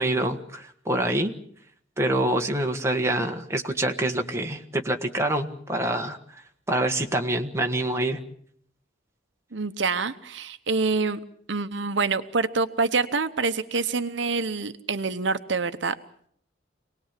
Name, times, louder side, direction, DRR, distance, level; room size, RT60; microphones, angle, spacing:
voice 1, 0.0-1.3 2.0-6.2 6.7-8.2, right 1 dB, 15° right, 3 dB, 1.6 m, -26 dB
voice 2, 9.5-11.2 11.5-16.0, right 4 dB, 70° right, 9 dB, 0.9 m, -26 dB
26.5 x 19.0 x 7.5 m, 0.64 s
head